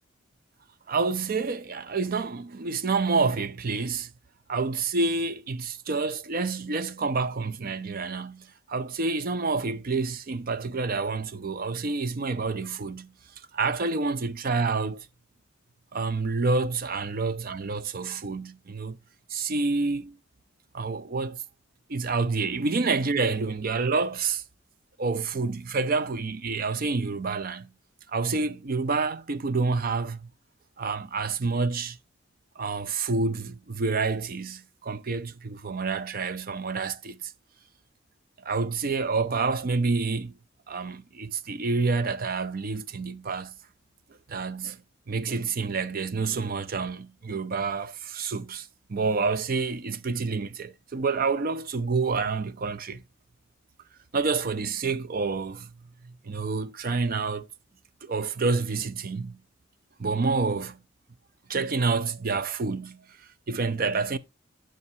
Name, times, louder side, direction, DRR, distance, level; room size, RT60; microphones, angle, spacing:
voice 1, 0.9-4.1 4.5-13.1 13.5-15.0 15.9-19.0 19.3-20.2 20.7-21.4 21.9-24.4 25.0-27.7 28.1-30.3 30.8-32.0 32.6-37.3 38.4-40.3 40.7-43.5 44.3-44.8 45.1-53.0 54.1-55.7 56.0-57.5 58.0-59.4 60.0-60.8 61.5-63.0 63.5-64.2, right 4 dB, 50° right, 0.6 m, -28 dB
11.0 x 6.5 x 2.8 m
head